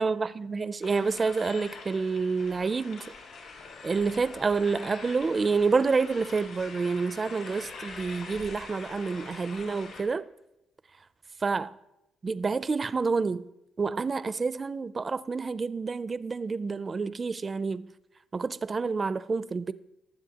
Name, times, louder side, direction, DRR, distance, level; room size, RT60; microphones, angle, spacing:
voice 1, 0.0-3.0 3.8-10.2 11.4-11.7 12.2-13.4 13.8-17.9 18.3-19.7, right 4 dB, 30° right, 0.4 m, -28 dB
sound 1, 0.8-10.0, left 4 dB, 80° left, 4.1 m, -44 dB
20.5 x 7.6 x 2.9 m
cardioid pair, 135°, 0 cm